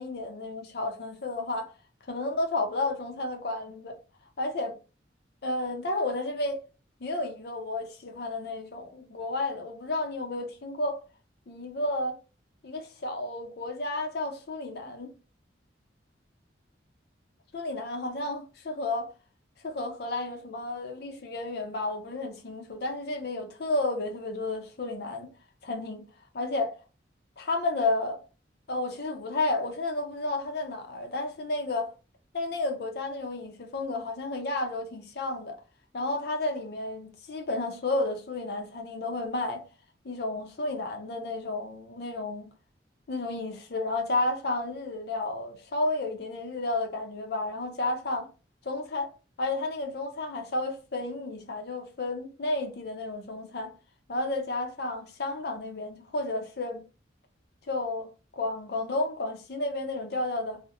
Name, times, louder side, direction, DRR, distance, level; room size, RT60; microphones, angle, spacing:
voice 1, 0.0-1.7 2.1-4.0 4.4-4.7 5.4-6.6 7.0-11.0 11.5-12.2 12.6-15.1 17.5-19.1 19.6-25.3 25.6-26.1 26.3-26.8 27.4-28.2 28.7-31.9 32.3-35.6 35.9-39.6 40.0-42.5 43.1-48.3 48.6-49.1 49.4-53.7 54.1-56.8 57.7-58.1 58.4-60.6, left 2 dB, 55° left, 0.6 m, -32 dB
2.4 x 2.0 x 2.8 m
head